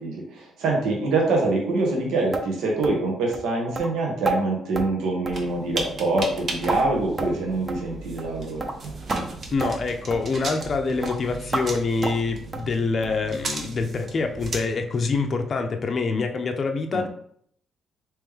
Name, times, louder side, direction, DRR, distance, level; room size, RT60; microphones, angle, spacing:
voice 1, 0.0-8.7 16.9-17.1, right 2 dB, 85° right, -1 dB, 1.1 m, -25 dB
sound 1, 2.3-2.5 2.8-3.0 3.3-3.5 3.8-3.9 4.3-4.4 4.8-4.9 5.3-5.5 5.8-5.9 6.2-6.8 7.2-7.4 7.7-7.8 8.2-8.3 8.6-8.8 9.1-9.2 9.6-9.7 10.1-10.2 10.6-10.8 11.0-11.2 11.5-11.7 12.0-12.2 12.5-12.7 13.0-13.2 13.5-13.6 14.0-14.1 14.5-14.6, right 2 dB, 25° right, 0.5 m, -30 dB
sound 2, 5.3-14.6, right 3 dB, 50° right, 0.8 m, -36 dB
voice 2, 9.5-17.1, left 4 dB, 45° left, 5 dB, 0.5 m, -25 dB
3.3 x 3.0 x 3.5 m, 0.64 s
cardioid pair, 90°, 0 cm